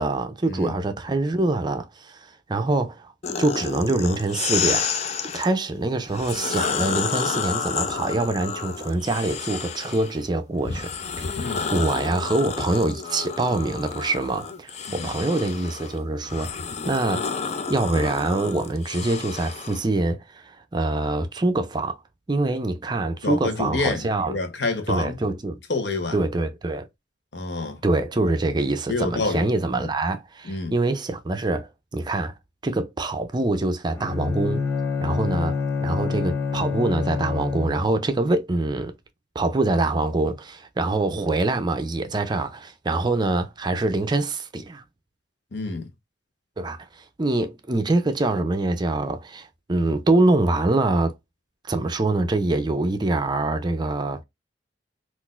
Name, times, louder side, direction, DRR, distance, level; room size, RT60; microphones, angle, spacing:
voice 1, 0.0-3.1 3.4-4.9 5.3-16.5 16.8-17.3 17.7-22.0 22.3-24.3 24.9-25.6 26.1-26.9 27.8-32.3 32.6-34.7 35.0-38.9 39.3-44.8 46.6-51.1 51.7-54.2, right 2 dB, 25° right, 0.4 m, -24 dB
sound 1, 3.2-5.5 6.1-10.2 10.6-19.8, left 6 dB, 40° left, 0.4 m, -30 dB
voice 2, 11.4-11.7 14.9-15.1 23.2-25.2 25.7-26.2 27.3-27.8 28.9-29.5 29.7-29.9 30.5-30.7 45.5-45.9, left 3 dB, 70° left, 0.8 m, -28 dB
Bowed string instrument, 33.9-38.0, left 5 dB, 15° left, 0.7 m, -27 dB
3.9 x 2.5 x 2.4 m
head